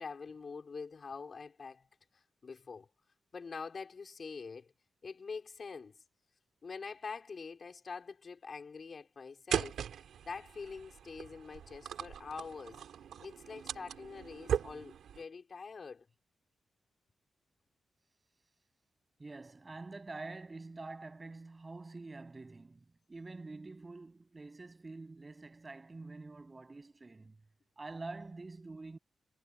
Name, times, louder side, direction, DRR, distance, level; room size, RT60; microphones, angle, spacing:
voice 1, 0.0-1.9 2.1-2.9 3.3-4.7 5.0-6.0 6.6-9.8 10.2-12.8 13.2-16.1, left 5 dB, 35° left, 5.1 m, -45 dB
sound 1, 9.5-15.2, right 9 dB, 80° right, 5.5 m, -39 dB
voice 2, 19.2-27.4 27.8-29.0, right 3 dB, 20° right, 8.0 m, -47 dB
wide cardioid pair, 180°, 0 cm